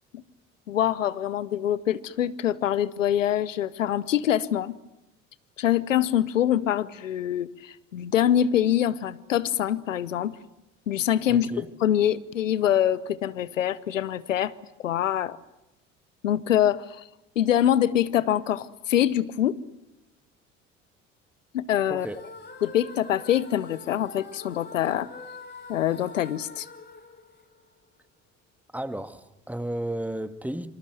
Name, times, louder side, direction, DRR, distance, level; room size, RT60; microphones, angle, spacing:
voice 1, 0.7-4.8 5.6-10.4 10.9-14.5 14.8-15.4 16.2-17.0 17.4-19.6 21.5-22.1 22.6-25.1 25.7-26.7, left 11 dB, 80° left, 19 dB, 1.0 m, -24 dB
voice 2, 11.3-11.7 21.9-22.2 28.7-30.7, right 1 dB, 5° right, 11 dB, 1.9 m, -33 dB
sound 1, 21.9-28.1, left 4 dB, 25° left, 4.1 m, -45 dB
27.0 x 25.5 x 7.8 m, 0.95 s
figure-of-eight pair, 55°, 38 cm